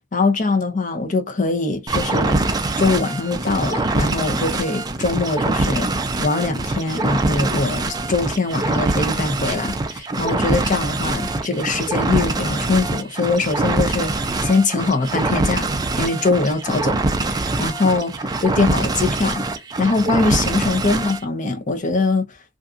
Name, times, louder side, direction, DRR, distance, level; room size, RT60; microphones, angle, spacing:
voice 1, 0.1-2.5 2.8-5.9 6.2-15.7 16.0-17.0 17.3-19.4 19.8-22.2, left 3 dB, 40° left, 0.7 m, -22 dB
sound 1, 1.9-21.2, right 2 dB, 20° right, 0.4 m, -23 dB
2.6 x 2.4 x 2.5 m
head